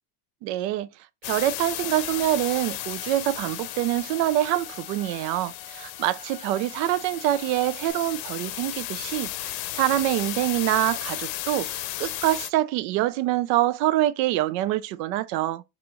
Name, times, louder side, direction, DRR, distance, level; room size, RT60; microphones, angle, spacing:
voice 1, 0.4-0.9 1.2-15.6, right 14 dB, 75° right, 0.7 m, -25 dB
sound 1, 1.2-12.5, left 14 dB, 70° left, 0.7 m, -34 dB
Bowed string instrument, 1.9-7.9, left 5 dB, 45° left, 1.0 m, -49 dB
6.1 x 2.8 x 3.0 m
supercardioid pair, 110°, 50 cm